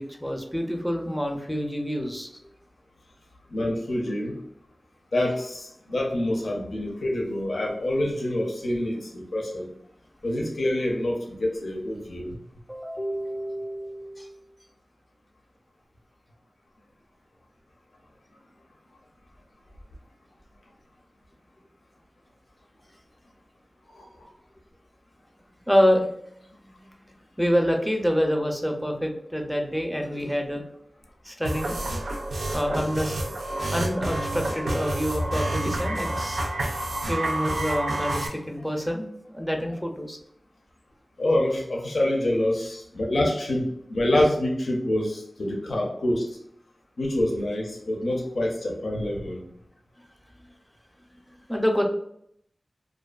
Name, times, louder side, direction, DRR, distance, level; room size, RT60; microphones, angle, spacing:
voice 1, 0.0-2.3 12.7-14.3 25.7-26.1 26.8-27.0 27.4-30.6 31.2-31.8 32.5-33.2 33.7-36.4 37.1-40.2 51.5-51.8, equal, 5° left, 2 dB, 0.4 m, -27 dB
voice 2, 3.5-4.4 5.1-9.7 10.2-12.4 23.9-24.1 41.2-46.4 47.0-49.4, left 1 dB, 85° left, -1 dB, 0.5 m, -26 dB
sound 1, 31.4-38.3, right 1 dB, 85° right, 0.4 m, -29 dB
2.5 x 2.3 x 2.3 m, 0.71 s
wide cardioid pair, 70°, 0 cm